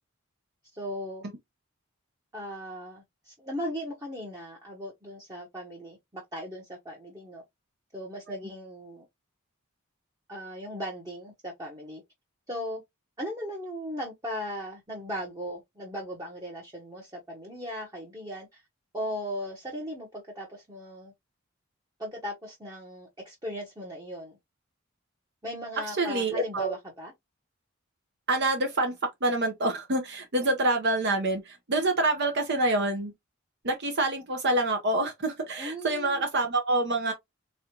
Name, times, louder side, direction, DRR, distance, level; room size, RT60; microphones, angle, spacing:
voice 1, 0.7-1.2 2.3-7.4 7.9-9.0 10.3-12.0 12.5-12.8 13.2-18.6 18.9-21.1 22.0-24.4 25.4-27.1 35.6-36.2, equal, 15° right, 1.0 m, -37 dB
voice 2, 25.9-26.7 28.3-33.1 33.6-37.1, right 2 dB, 55° right, 0.8 m, -27 dB
3.6 x 3.2 x 2.9 m
head